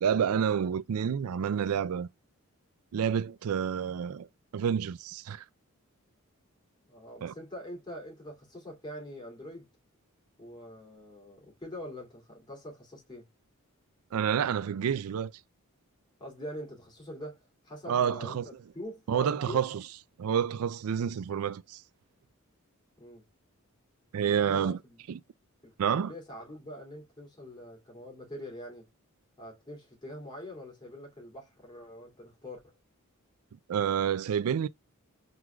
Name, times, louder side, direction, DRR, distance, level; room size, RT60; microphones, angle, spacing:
voice 1, 0.0-2.1 2.9-4.3 4.5-5.4 7.2-7.3 14.1-15.3 17.9-18.5 19.1-19.8 20.2-21.8 24.1-24.8 25.1-25.2 25.8-26.1 33.7-34.7, right 8 dB, 75° right, 0.4 m, -29 dB
voice 2, 6.9-9.7 10.4-13.3 16.2-19.7 23.0-23.3 24.3-25.0 25.6-28.9 29.4-32.8, equal, 20° left, 2.7 m, -44 dB
4.6 x 3.9 x 2.3 m
head